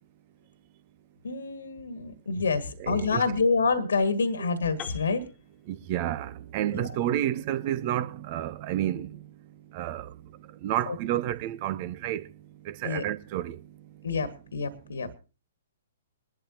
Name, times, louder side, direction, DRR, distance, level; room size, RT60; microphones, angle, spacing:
voice 1, 1.2-5.2 6.7-6.9 10.9-11.0 12.8-13.0 14.0-15.1, left 4 dB, 65° left, 1.7 m, -27 dB
voice 2, 2.8-3.2 5.7-9.2 9.7-10.1 10.6-12.2 12.7-13.6, right 12 dB, 35° right, 1.0 m, -30 dB
Piano, 4.8-8.7, left 8 dB, 20° left, 1.8 m, -48 dB
22.5 x 12.0 x 2.9 m
figure-of-eight pair, 120°, 0 cm